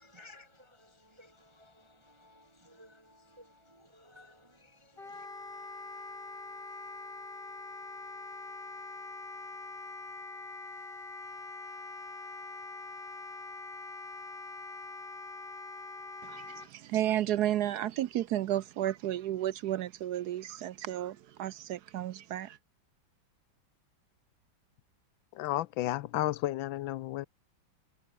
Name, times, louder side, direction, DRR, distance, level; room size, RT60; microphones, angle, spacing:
voice 1, 0.0-5.3, left 1 dB, 25° right, 0.6 m, -58 dB
Wind instrument woodwind instrument, 5.0-16.7, left 3 dB, 25° left, 2.8 m, -44 dB
voice 2, 16.2-22.6, right 12 dB, 70° right, 1.0 m, -32 dB
voice 3, 25.3-27.3, left 15 dB, 80° left, 1.3 m, -32 dB
omnidirectional pair, 2.2 m